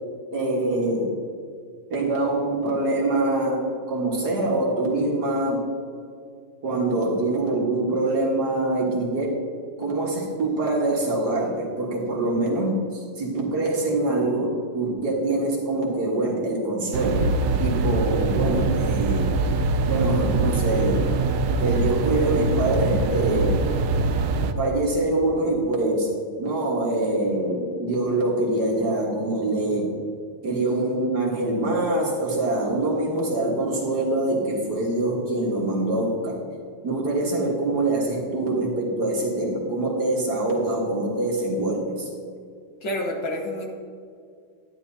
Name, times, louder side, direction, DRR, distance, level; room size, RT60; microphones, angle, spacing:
voice 1, 0.3-1.2 1.9-5.7 6.6-9.4 9.8-17.3 17.6-19.3 19.8-21.2 21.6-23.6 24.6-26.1 26.4-29.9 30.4-36.5 36.8-42.1, right 2 dB, 50° right, -2 dB, 2.0 m, -24 dB
sound 1, 16.9-24.5, right 3 dB, 85° right, 1.5 m, -23 dB
voice 2, 42.8-43.7, left 1 dB, 65° left, 0 dB, 1.7 m, -28 dB
12.0 x 10.5 x 2.7 m, 2.3 s
omnidirectional pair, 2.3 m